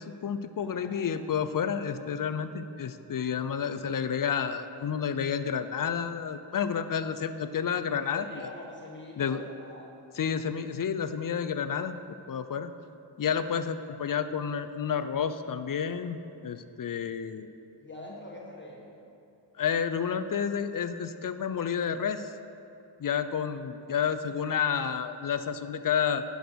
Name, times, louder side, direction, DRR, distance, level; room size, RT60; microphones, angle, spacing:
voice 1, 0.0-8.5 9.2-9.4 10.1-12.7 13.2-17.5 19.6-22.3 23.0-26.2, left 7 dB, 50° left, 10 dB, 0.5 m, -30 dB
voice 2, 0.6-1.3 8.0-9.9 17.8-18.9, left 2 dB, 25° left, -3 dB, 1.4 m, -45 dB
10.0 x 6.3 x 5.1 m, 2.7 s
wide cardioid pair, 95°, 45 cm